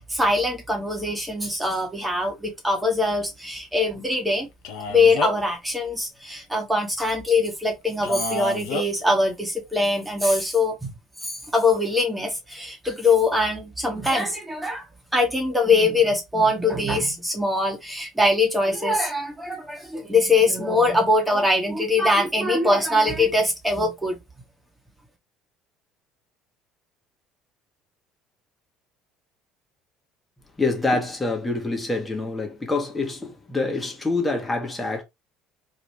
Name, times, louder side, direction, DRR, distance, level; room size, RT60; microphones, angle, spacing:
voice 1, 0.1-4.5 4.9-10.9 11.2-14.8 15.1-24.2, left 2 dB, 10° right, 1.2 m, -22 dB
Male speech man speaking, 4.6-5.5 8.0-8.9, left 4 dB, 75° left, 0.7 m, -29 dB
voice 2, 30.6-35.0, left 3 dB, 15° left, 1.3 m, -26 dB
3.1 x 2.4 x 3.1 m
hypercardioid pair, 65°, 0 cm